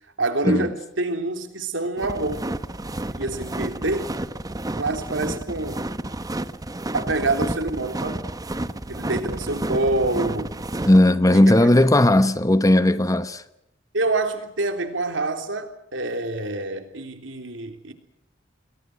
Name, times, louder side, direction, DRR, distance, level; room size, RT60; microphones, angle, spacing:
voice 1, 0.2-2.5 3.2-4.1 4.8-5.9 6.9-8.2 8.9-10.5 11.3-11.6 13.9-17.9, right 2 dB, 80° right, 3.5 m, -26 dB
sound 1, 2.0-11.0, right 1 dB, 20° right, 0.9 m, -31 dB
voice 2, 10.9-13.4, left 1 dB, 20° left, 0.9 m, -16 dB
30.0 x 22.0 x 6.2 m
head